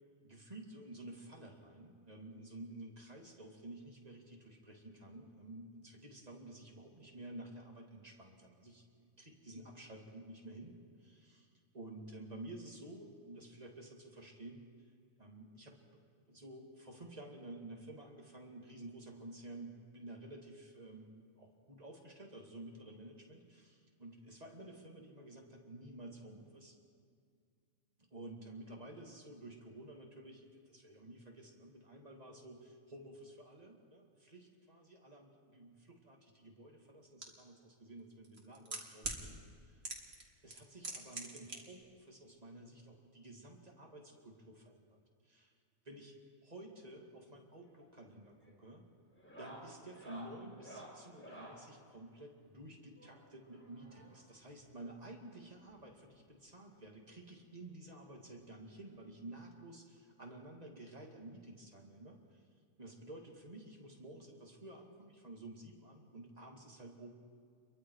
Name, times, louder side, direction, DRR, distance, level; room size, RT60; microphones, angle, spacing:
voice 1, 0.2-11.5 11.7-14.9 15.2-15.8 16.3-26.8 28.1-39.9 40.4-45.0 45.2-45.5 45.8-46.1 46.4-48.8 49.4-62.5 62.8-67.1, right 1 dB, 30° right, 0 dB, 2.5 m, -52 dB
sound 1, 37.2-37.3 38.2-39.2 39.8-40.2 40.5-41.6 41.8-41.9, right 3 dB, 50° right, 2.4 m, -41 dB
sound 2, 47.6-47.9 48.2-48.6 49.1-51.7 53.0-54.4 55.4-55.5 55.7-55.8 56.3-56.4 57.7-57.8 59.1-59.2, right 1 dB, 10° left, 4.6 m, -54 dB
28.5 x 22.5 x 4.8 m, 2.2 s
omnidirectional pair, 1.4 m